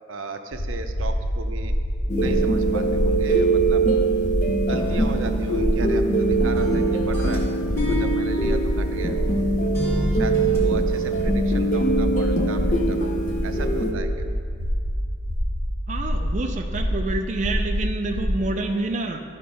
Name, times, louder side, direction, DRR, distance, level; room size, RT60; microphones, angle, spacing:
voice 1, 0.1-1.7 2.1-3.9 4.6-7.5 7.9-9.2 9.8-13.1 13.4-14.2, right 4 dB, 85° right, 7 dB, 0.6 m, -35 dB
sound 1, 0.5-18.4, equal, 90° left, 1.0 m, -27 dB
sound 2, 2.1-13.9, right 2 dB, 40° left, 0.7 m, -23 dB
sound 3, 4.8-6.2 6.6-9.4 9.7-11.2, right 1 dB, 15° left, 1.7 m, -35 dB
voice 2, 15.9-19.2, right 2 dB, 35° right, 3 dB, 0.4 m, -27 dB
12.0 x 4.3 x 5.0 m, 2.2 s
head